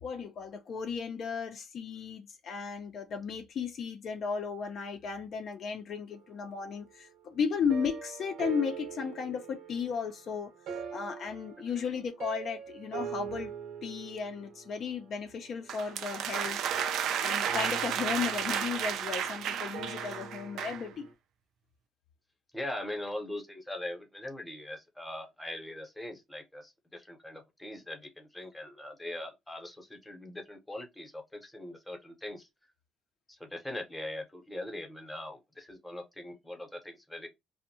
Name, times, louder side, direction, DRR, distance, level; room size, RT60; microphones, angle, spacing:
voice 1, 0.0-10.5 10.9-13.5 13.8-16.6 17.2-21.1, left 6 dB, 50° left, 0.4 m, -35 dB
sound 1, 7.7-21.1, right 6 dB, 85° right, 0.8 m, -43 dB
sound 2, 15.7-20.9, right 9 dB, 70° right, 0.3 m, -32 dB
voice 2, 22.5-32.5 33.3-37.3, left 1 dB, 5° left, 0.7 m, -41 dB
2.6 x 2.0 x 2.7 m
cardioid pair, 145°, 0 cm